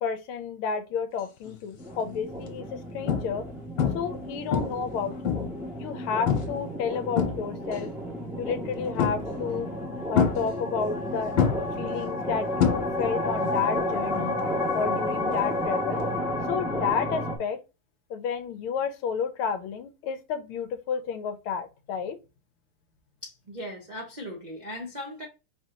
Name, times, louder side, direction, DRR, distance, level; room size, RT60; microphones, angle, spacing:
voice 1, 0.0-3.5 3.9-5.4 5.8-7.9 8.4-9.7 10.1-11.3 11.8-14.4 14.7-16.0 16.5-17.6 18.1-22.2, left 6 dB, 80° left, 1.5 m, -31 dB
sound 1, 1.5-1.8 2.4-2.5 3.1-3.5 3.8-4.2 4.5-5.7 6.3-6.6 6.9-7.8 9.0-9.5 10.2-11.0 11.4-13.3 13.5-13.9 16.0-16.1, left 7 dB, 65° left, 1.7 m, -26 dB
sound 2, 1.8-17.4, left 1 dB, ahead, 0.5 m, -32 dB
voice 2, 23.2-25.3, left 1 dB, 70° right, 0.4 m, -38 dB
4.7 x 2.8 x 3.9 m
omnidirectional pair, 2.4 m